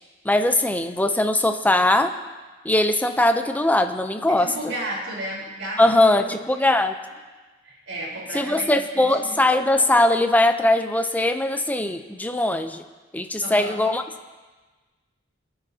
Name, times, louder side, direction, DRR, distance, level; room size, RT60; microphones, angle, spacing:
voice 1, 0.2-2.1 2.6-4.5 5.8-6.9 8.3-12.8 13.1-14.0, left 1 dB, 10° left, 7 dB, 0.6 m, -20 dB
voice 2, 4.3-6.4 7.6-9.5 13.4-13.8, right 1 dB, 90° right, -4 dB, 3.8 m, -33 dB
24.0 x 9.6 x 2.8 m, 1.3 s
head